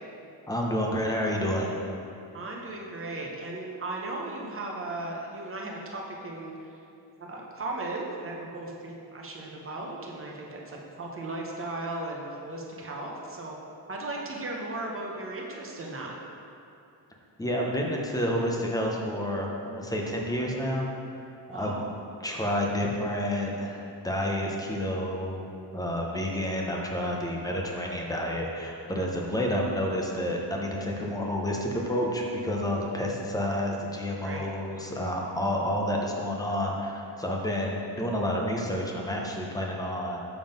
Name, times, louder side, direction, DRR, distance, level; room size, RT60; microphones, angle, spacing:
voice 1, 0.5-1.7 17.4-20.9 21.5-21.8 22.2-40.2, equal, 10° left, -1 dB, 0.7 m, -29 dB
voice 2, 2.3-6.8 7.2-13.6 13.9-16.1 21.5-21.8 34.2-34.5, right 2 dB, 30° right, -2 dB, 0.9 m, -36 dB
7.2 x 3.8 x 5.2 m, 2.6 s
wide cardioid pair, 150°, 42 cm